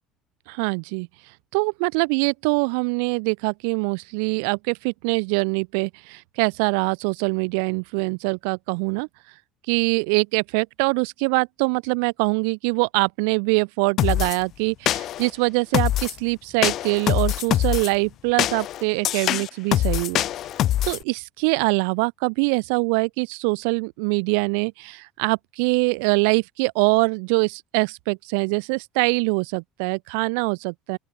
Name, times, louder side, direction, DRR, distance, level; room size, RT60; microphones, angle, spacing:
voice 1, 0.5-1.1 1.5-9.1 9.7-20.2 20.8-31.0, right 37 dB, 80° right, 0.6 m, -23 dB
sound 1, 14.0-14.4 14.9-15.3 15.7-16.2 16.6-17.9 18.4-21.0, left 13 dB, 55° left, 0.3 m, -23 dB
open air
supercardioid pair, 95°, 0 cm